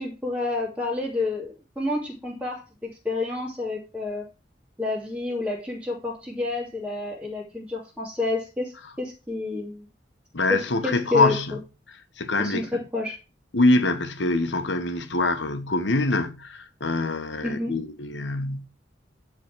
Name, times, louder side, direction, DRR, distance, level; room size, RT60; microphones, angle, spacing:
voice 1, 0.0-4.2 4.8-9.9 10.5-11.4 12.4-13.2 17.4-17.7, left 2 dB, 10° right, 2.6 m, -29 dB
voice 2, 10.3-11.6 12.2-12.7 13.5-18.7, left 2 dB, 80° left, 1.2 m, -24 dB
10.5 x 4.0 x 6.1 m
head